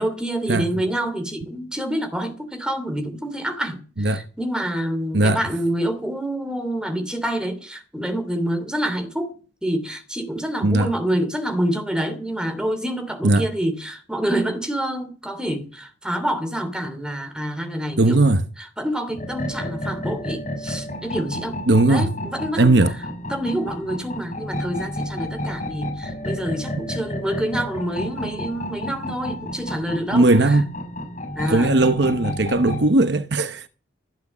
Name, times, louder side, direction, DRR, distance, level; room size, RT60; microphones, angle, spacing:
voice 1, 0.0-18.2 18.8-21.6 21.9-22.8 23.3-30.6 31.3-31.8, right 1 dB, 5° right, 2.9 m, -27 dB
voice 2, 18.0-18.4 21.7-22.1 22.6-22.9 30.1-30.7 31.5-33.7, right 2 dB, 60° right, 0.9 m, -18 dB
sound 1, 19.2-32.9, left 1 dB, 40° left, 5.6 m, -31 dB
16.0 x 9.6 x 7.4 m
head